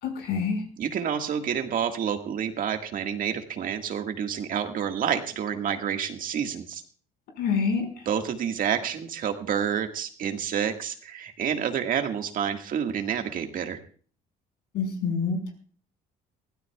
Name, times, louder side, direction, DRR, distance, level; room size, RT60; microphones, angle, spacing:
voice 1, 0.0-0.6 7.4-8.1 14.7-15.4, left 5 dB, 75° left, 4 dB, 5.2 m, -27 dB
voice 2, 0.8-6.8 8.1-13.8, right 8 dB, 55° right, 5 dB, 1.8 m, -29 dB
23.0 x 16.0 x 2.4 m, 0.42 s
cardioid pair, 110°, 17 cm